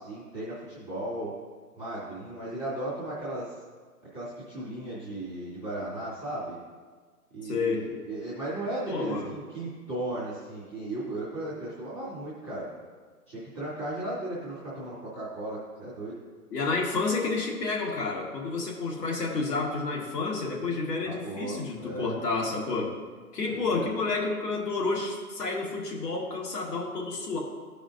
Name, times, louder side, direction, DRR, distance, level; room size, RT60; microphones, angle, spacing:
voice 1, 0.0-1.3 1.8-3.5 4.1-6.6 7.3-12.7 13.3-16.2 21.0-22.1 23.5-23.9, right 1 dB, 10° left, -12 dB, 0.6 m, -36 dB
voice 2, 7.4-7.9 8.9-9.3 16.5-22.9 23.3-27.4, left 3 dB, 85° left, -1 dB, 1.9 m, -30 dB
12.5 x 5.0 x 2.6 m, 1.5 s
hypercardioid pair, 180°, 47 cm